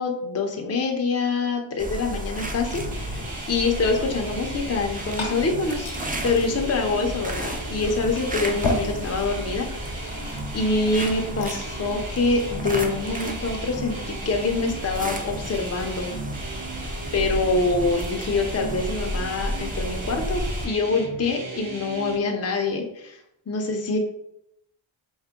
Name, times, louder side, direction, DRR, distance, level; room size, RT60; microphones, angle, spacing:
voice 1, 0.0-3.2 3.5-5.9 6.2-10.2 10.5-16.1 16.7-16.8 17.1-23.2 23.5-24.0, left 3 dB, 35° left, 2 dB, 0.5 m, -25 dB
sound 1, 1.8-20.7, equal, 20° right, 0.5 m, -33 dB
sound 2, 2.6-22.2, right 2 dB, 75° right, 1.0 m, -37 dB
Glass / Fill (with liquid), 4.7-11.8, left 2 dB, 70° left, 0.8 m, -35 dB
4.5 x 2.1 x 3.6 m, 0.78 s
wide cardioid pair, 80°, 48 cm